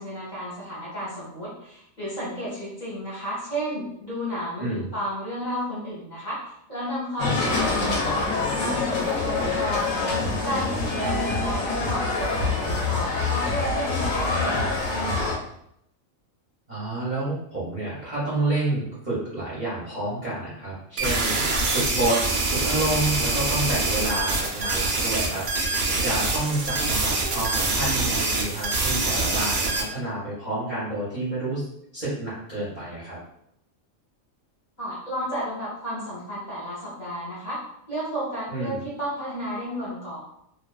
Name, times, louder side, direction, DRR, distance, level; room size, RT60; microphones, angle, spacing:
voice 1, 0.0-8.3 8.6-10.0 10.4-15.4 34.8-37.6 37.9-40.2, equal, 40° left, -8 dB, 0.8 m, -32 dB
sound 1, 7.2-15.4, left 3 dB, 75° left, 1.0 m, -25 dB
voice 2, 16.7-22.2 22.5-31.7 31.9-33.2 38.5-38.8, right 2 dB, 40° right, -8 dB, 0.7 m, -29 dB
sound 2, 21.0-29.8, right 3 dB, 90° right, 0.4 m, -25 dB
2.4 x 2.2 x 2.2 m, 0.74 s
omnidirectional pair, 1.4 m